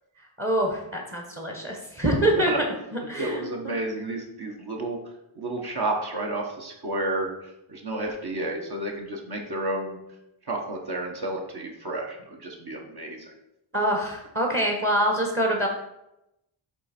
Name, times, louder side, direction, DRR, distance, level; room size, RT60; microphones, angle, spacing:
voice 1, 0.4-2.5 3.1-3.7 13.7-15.7, right 1 dB, 25° right, 1 dB, 1.2 m, -25 dB
voice 2, 3.2-5.0 5.4-10.0 10.4-13.3, right 2 dB, 50° right, 0 dB, 1.2 m, -31 dB
9.5 x 3.4 x 4.3 m, 0.87 s
wide cardioid pair, 105°, 48 cm